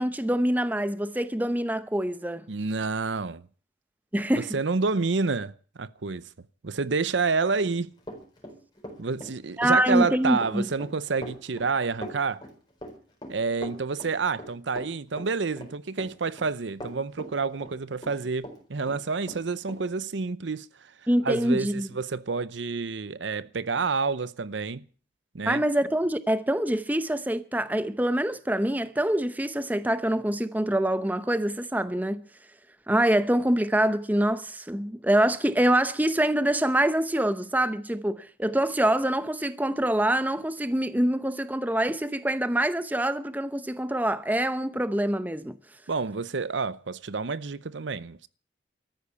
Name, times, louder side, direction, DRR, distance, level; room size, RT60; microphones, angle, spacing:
voice 1, 0.0-2.5 4.1-4.5 9.6-10.7 21.1-21.9 25.5-32.2 32.9-45.6, right 1 dB, 10° right, 0.7 m, -25 dB
voice 2, 2.5-3.4 4.3-6.3 6.6-7.9 9.0-12.4 13.3-20.9 21.2-24.8 25.3-25.6 45.9-48.3, right 4 dB, 85° right, 0.7 m, -29 dB
Run, 7.4-18.6 18.9-19.8, equal, 25° left, 4.2 m, -41 dB
13.5 x 10.0 x 8.3 m
head